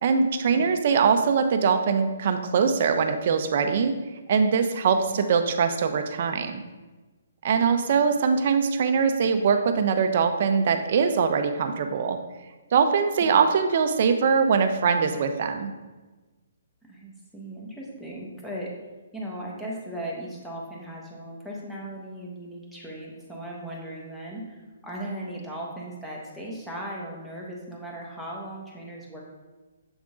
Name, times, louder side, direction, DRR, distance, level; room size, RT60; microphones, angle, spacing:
voice 1, 0.0-3.9 4.3-6.6 7.4-12.2 12.7-15.7, right 6 dB, 50° right, 7 dB, 0.5 m, -22 dB
voice 2, 16.8-18.7 19.1-29.2, right 1 dB, 5° left, -4 dB, 1.1 m, -37 dB
7.0 x 3.6 x 3.7 m, 1.2 s
hypercardioid pair, 155°, 0 cm